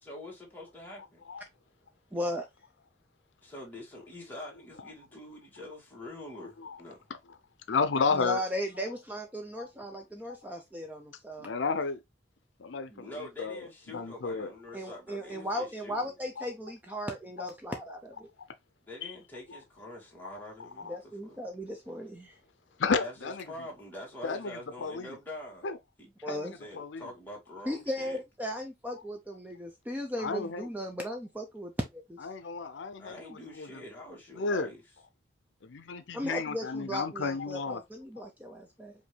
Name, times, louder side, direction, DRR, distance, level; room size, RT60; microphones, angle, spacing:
voice 1, 0.0-1.2 3.4-7.0 12.9-16.1 18.9-21.0 21.2-21.4 23.0-25.7 26.0-26.1 26.5-28.2 33.0-34.8, left 1 dB, 10° left, 1.7 m, -45 dB
voice 2, 2.1-2.5 8.1-11.5 14.7-18.3 20.9-22.3 26.2-26.5 27.7-32.2 36.1-38.9, equal, 10° right, 0.5 m, -36 dB
voice 3, 7.7-8.4 9.6-9.7 11.4-12.0 12.6-13.6 13.9-14.5 15.9-16.0 16.4-16.5 20.2-20.3 20.8-21.0 22.8-23.4 24.2-25.2 25.6-25.8 26.3-27.1 30.2-30.7 32.2-33.7 34.4-34.7 35.6-37.8, left 4 dB, 80° left, 0.5 m, -32 dB
5.2 x 2.7 x 3.2 m
head